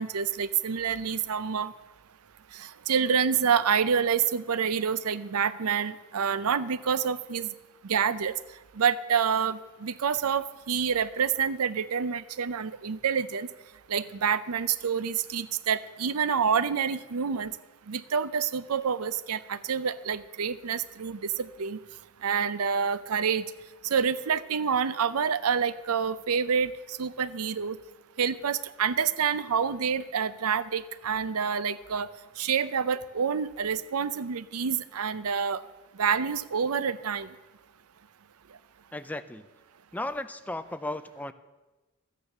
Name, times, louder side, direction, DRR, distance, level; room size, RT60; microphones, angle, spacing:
voice 1, 0.0-1.7 2.9-7.5 7.8-8.3 8.8-13.5 13.9-17.5 17.9-21.8 22.2-23.4 23.9-26.7 27.0-27.8 28.2-32.1 32.4-35.6 36.0-37.3, right 7 dB, 75° right, 16 dB, 0.6 m, -27 dB
voice 2, 38.9-39.5 39.9-41.3, left 1 dB, 5° left, 11 dB, 0.4 m, -35 dB
13.5 x 9.6 x 6.6 m, 1.2 s
head